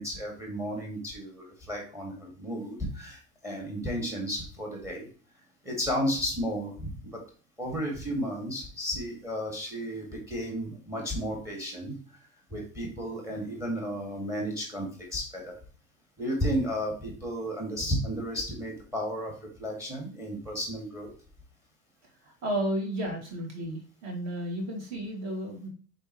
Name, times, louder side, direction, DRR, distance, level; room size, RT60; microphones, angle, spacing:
voice 1, 0.0-5.1 5.6-7.2 7.6-11.9 12.5-15.5 16.2-19.3 19.6-21.1, equal, 5° right, 1 dB, 2.3 m, -33 dB
voice 2, 22.2-25.7, right 1 dB, 35° right, 0 dB, 3.2 m, -33 dB
9.6 x 4.0 x 3.2 m, 0.39 s
figure-of-eight pair, 80°, 42 cm